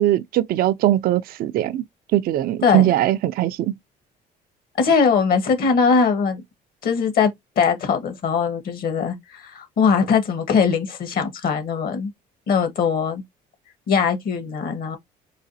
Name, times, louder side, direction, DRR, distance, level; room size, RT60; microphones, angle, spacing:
voice 1, 0.0-1.8 2.1-3.7, right 13 dB, 60° right, 0.4 m, -20 dB
voice 2, 4.8-6.4 6.8-12.1 12.5-13.2 13.9-15.0, left 6 dB, 60° left, 1.4 m, -21 dB
4.8 x 2.4 x 2.6 m
cardioid pair, 110°, 17 cm